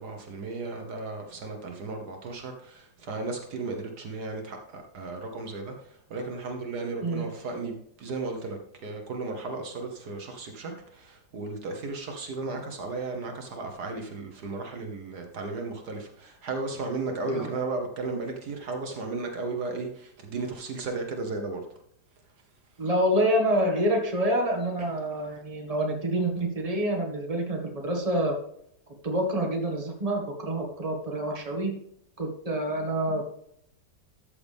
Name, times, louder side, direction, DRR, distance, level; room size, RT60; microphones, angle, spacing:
voice 1, 0.0-21.7 24.8-24.9, right 3 dB, 65° right, 4 dB, 1.8 m, -35 dB
voice 2, 22.8-28.4 29.0-31.7 32.2-33.3, right 1 dB, 20° right, 1 dB, 1.9 m, -27 dB
13.5 x 6.8 x 3.5 m, 0.70 s
omnidirectional pair, 1.9 m